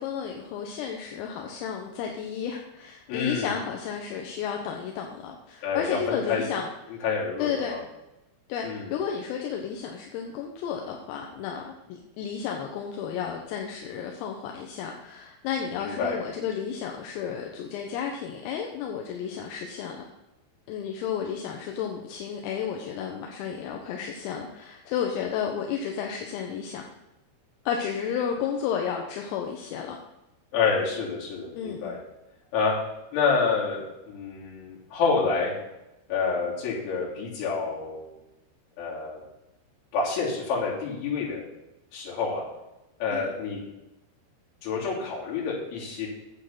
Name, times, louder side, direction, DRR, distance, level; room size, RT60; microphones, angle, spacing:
voice 1, 0.0-7.0 7.4-7.8 8.5-20.0 20.7-26.9 27.7-30.0 31.5-32.0 43.1-43.3, left 7 dB, 85° left, 1 dB, 3.6 m, -32 dB
voice 2, 3.1-3.6 5.6-6.5 7.0-7.8 8.6-8.9 15.8-16.2 30.5-32.0 32.5-32.7 33.1-35.5 36.1-38.1 38.8-39.2 39.9-41.4 41.9-42.4 43.0-43.6 44.6-46.1, left 5 dB, 65° left, -5 dB, 5.4 m, -28 dB
8.9 x 7.8 x 5.8 m, 0.95 s
omnidirectional pair, 5.9 m